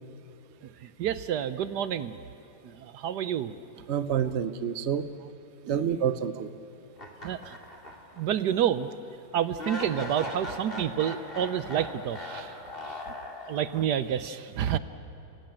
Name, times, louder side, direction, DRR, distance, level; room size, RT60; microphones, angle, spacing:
voice 1, 0.6-2.1 2.6-3.6 5.6-6.1 7.2-7.6 8.2-8.9 9.3-12.5 12.8-13.0 13.5-14.8, right 9 dB, 70° right, 13 dB, 1.2 m, -29 dB
voice 2, 3.9-5.1 5.7-6.5, right 8 dB, 50° right, 12 dB, 0.8 m, -28 dB
sound 1, 7.0-8.3 8.6-8.7 9.6-13.9, left 1 dB, 30° left, 2.5 m, -39 dB
29.5 x 17.5 x 8.9 m, 2.9 s
omnidirectional pair, 2.0 m